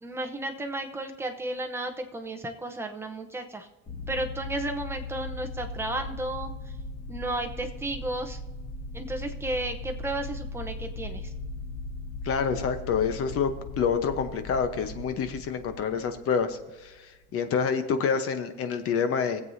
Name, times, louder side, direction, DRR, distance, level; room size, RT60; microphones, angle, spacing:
voice 1, 0.0-3.7 4.1-6.8 7.1-8.4 8.9-11.3, right 1 dB, 10° right, 3 dB, 0.8 m, -33 dB
sound 1, 3.9-16.9, left 2 dB, 35° left, 1.9 m, -38 dB
voice 2, 12.2-13.5 13.8-16.9 17.3-19.4, left 6 dB, 50° left, 9 dB, 1.0 m, -27 dB
21.5 x 7.8 x 2.7 m, 1.1 s
cardioid pair, 170°, 29 cm